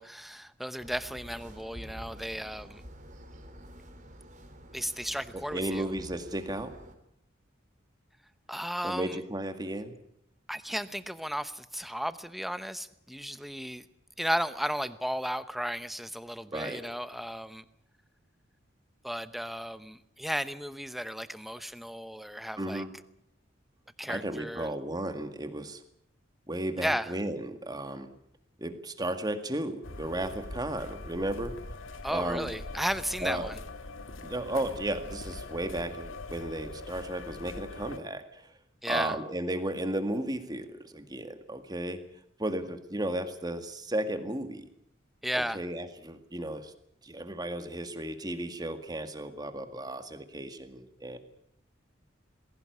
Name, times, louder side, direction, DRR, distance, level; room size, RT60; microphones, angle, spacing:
voice 1, 0.0-2.8 4.7-5.9 8.5-9.2 10.5-13.9 14.2-17.6 19.0-22.8 24.0-24.7 26.8-27.1 32.0-33.6 38.8-39.2 45.2-45.6, equal, ahead, 13 dB, 0.8 m, -34 dB
sound 1, 0.8-6.9, equal, 40° right, 3.2 m, -48 dB
voice 2, 5.3-6.7 8.8-9.9 16.5-16.8 22.6-22.9 24.1-25.8 26.5-28.1 28.6-31.6 32.1-32.5 33.2-33.5 34.2-38.4 38.9-42.0 42.4-44.7 45.3-46.7 47.0-51.2, right 1 dB, 20° right, 9 dB, 1.9 m, -34 dB
sound 2, 29.8-38.0, left 2 dB, 85° left, 1.8 m, -42 dB
20.5 x 17.0 x 9.5 m, 0.73 s
head